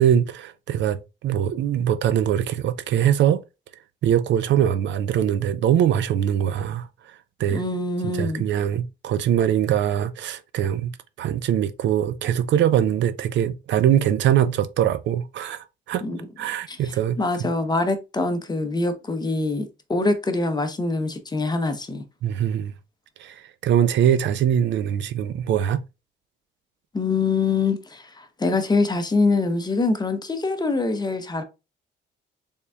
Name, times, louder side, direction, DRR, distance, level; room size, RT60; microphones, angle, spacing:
voice 1, 0.0-3.4 4.0-7.6 8.1-10.9 11.2-16.0 16.4-17.5 22.2-22.7 23.2-25.8, right 10 dB, 70° right, 0.4 m, -22 dB
voice 2, 7.5-8.4 16.0-16.2 16.7-16.8 17.2-22.0 26.9-31.4, left 3 dB, 20° left, 0.7 m, -24 dB
3.9 x 3.5 x 2.2 m
cardioid pair, 90°, 20 cm